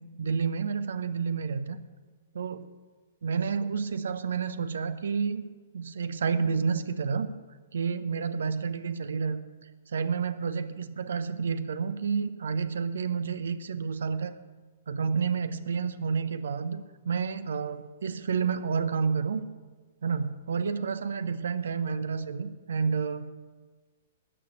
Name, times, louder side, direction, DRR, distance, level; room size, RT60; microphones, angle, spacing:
voice 1, 0.2-1.8 2.3-2.7 3.2-5.4 5.7-7.3 7.7-9.4 9.9-14.3 14.9-19.4 20.0-23.3, right 5 dB, 65° right, 13 dB, 0.8 m, -30 dB
13.0 x 6.7 x 8.4 m, 1.4 s
figure-of-eight pair, 110°, 0 cm